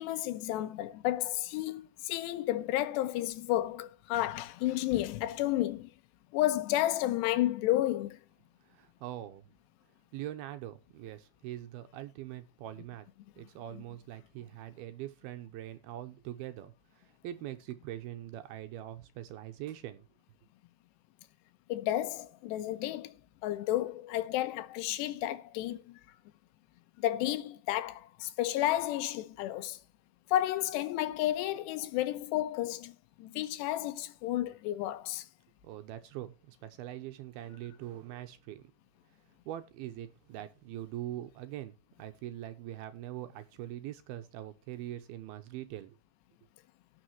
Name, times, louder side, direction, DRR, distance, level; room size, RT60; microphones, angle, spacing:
voice 1, 0.0-5.9 6.3-8.2 21.7-23.1 23.4-26.0 27.0-29.8 30.3-32.9 33.2-35.3, left 14 dB, 85° left, 3.0 m, -31 dB
voice 2, 8.6-9.5 10.1-13.1 13.4-20.1 35.6-38.6 39.5-46.0, right 13 dB, 80° right, 2.5 m, -43 dB
18.0 x 6.5 x 3.0 m
omnidirectional pair, 4.9 m